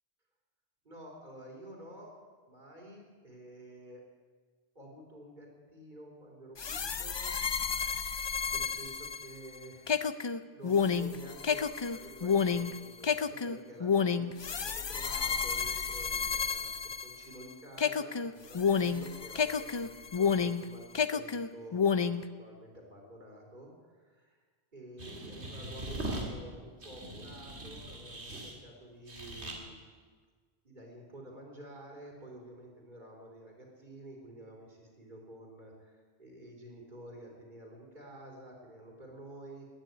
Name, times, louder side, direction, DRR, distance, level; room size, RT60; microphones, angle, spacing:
voice 1, 0.8-2.2 2.5-4.0 4.8-7.3 7.7-7.9 8.5-19.9 20.2-22.1 22.4-24.4 24.7-29.8 30.6-39.7, right 1 dB, 45° right, -1 dB, 3.7 m, -50 dB
sound 1, 6.6-17.4 17.8-20.7 20.9-22.3, left 6 dB, 40° left, 0.4 m, -30 dB
sound 2, 25.0-26.2 26.8-28.5 29.1-29.6, right 1 dB, 85° right, 2.8 m, -41 dB
13.5 x 11.0 x 9.3 m, 1.5 s
omnidirectional pair, 1.1 m